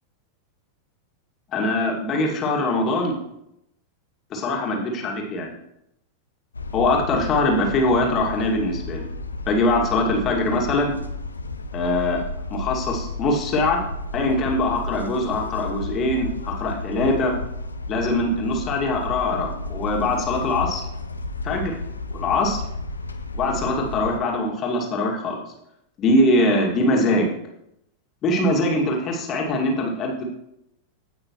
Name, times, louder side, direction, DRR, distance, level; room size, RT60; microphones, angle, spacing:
voice 1, 1.5-3.2 4.3-5.5 6.7-9.1 9.5-10.9 11.7-12.2 12.5-13.8 14.1-17.3 17.9-20.8 21.4-21.8 22.1-22.6 23.3-25.4 26.0-27.3 28.2-30.2, left 2 dB, 30° left, 0 dB, 2.3 m, -22 dB
sound 1, 6.5-24.2, left 2 dB, 80° left, 0.7 m, -32 dB
16.5 x 6.1 x 3.1 m, 0.81 s
figure-of-eight pair, 90°, 0 cm